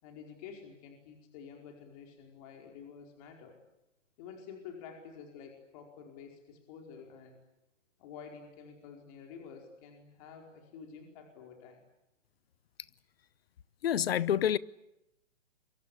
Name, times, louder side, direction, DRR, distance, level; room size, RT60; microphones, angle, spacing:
voice 1, 0.0-3.6 4.2-7.4 8.0-11.8, left 6 dB, 30° left, 4.8 m, -49 dB
voice 2, 13.8-14.6, left 10 dB, 55° left, 1.0 m, -27 dB
27.5 x 24.0 x 8.6 m
hypercardioid pair, 155°, 37 cm